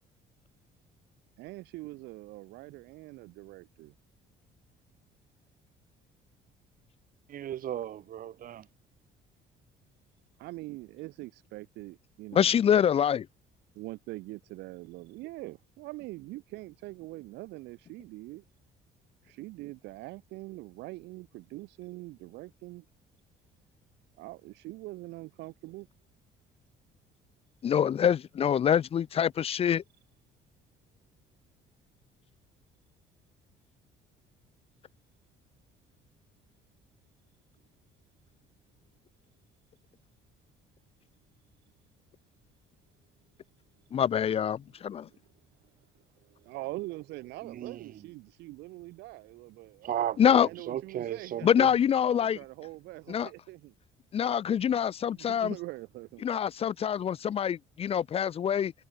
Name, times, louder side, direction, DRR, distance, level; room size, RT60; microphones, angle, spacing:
voice 1, 1.4-3.9 10.4-12.6 13.7-18.4 19.2-22.8 24.2-25.9 44.9-45.3 46.2-50.0 50.3-51.6 52.1-53.7 55.1-56.2, right 20 dB, 90° right, 4.3 m, -43 dB
voice 2, 7.3-8.7 47.4-47.8 49.8-51.7, right 11 dB, 55° right, 2.6 m, -35 dB
voice 3, 12.3-13.3 27.6-29.8 43.9-45.1 50.2-50.5 51.4-52.4 53.1-53.3 54.1-55.5 56.2-58.7, left 8 dB, 35° left, 0.5 m, -25 dB
cardioid pair, 110°, 17 cm